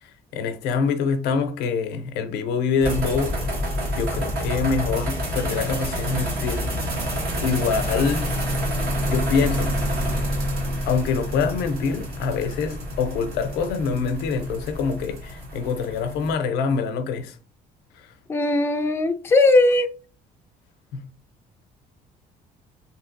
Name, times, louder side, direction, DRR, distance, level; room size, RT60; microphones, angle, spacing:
voice 1, 0.0-3.4 3.9-6.7 7.4-8.3 9.1-9.8 10.9-17.4 18.0-18.1 20.9-21.0, left 5 dB, 90° left, 0.5 m, -25 dB
sound 1, 2.8-16.3, equal, 65° right, 1.1 m, -28 dB
voice 2, 18.3-19.9, left 2 dB, 15° left, 0.3 m, -18 dB
3.0 x 2.8 x 2.6 m
cardioid pair, 110°, 17 cm